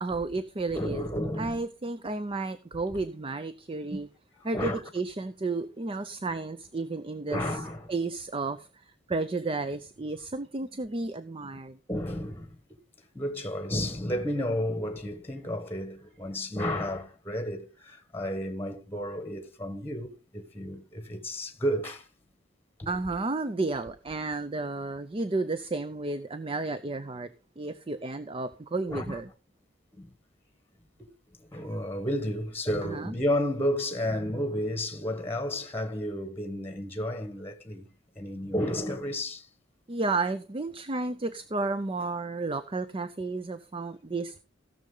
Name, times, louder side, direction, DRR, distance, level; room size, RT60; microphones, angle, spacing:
voice 1, 0.0-1.1 1.4-4.1 4.4-7.6 7.9-11.8 22.9-27.3 27.6-29.3 32.8-33.1 39.9-44.4, right 3 dB, 25° right, 0.5 m, -32 dB
voice 2, 0.7-1.6 4.5-4.8 7.3-7.9 11.9-12.6 13.1-22.1 22.8-22.9 28.9-29.2 29.9-30.1 31.0-31.1 31.4-37.9 38.2-39.5, equal, 10° left, 1.2 m, -32 dB
16.5 x 6.5 x 3.8 m
head